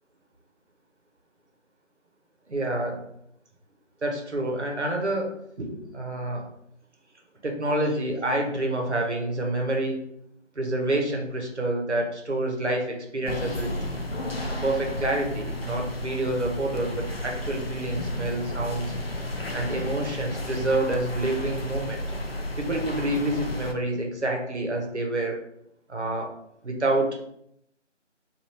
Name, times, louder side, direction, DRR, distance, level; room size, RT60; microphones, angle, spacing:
voice 1, 2.5-3.0 4.0-6.4 7.4-10.0 10.5-13.7 14.5-18.9 19.5-22.0 22.6-25.4 25.9-26.3 26.6-27.3, right 1 dB, 65° right, 1 dB, 1.0 m, -28 dB
sound 1, 13.3-23.7, left 1 dB, 55° left, 0.4 m, -32 dB
3.2 x 2.6 x 4.2 m, 0.74 s
figure-of-eight pair, 175°, 38 cm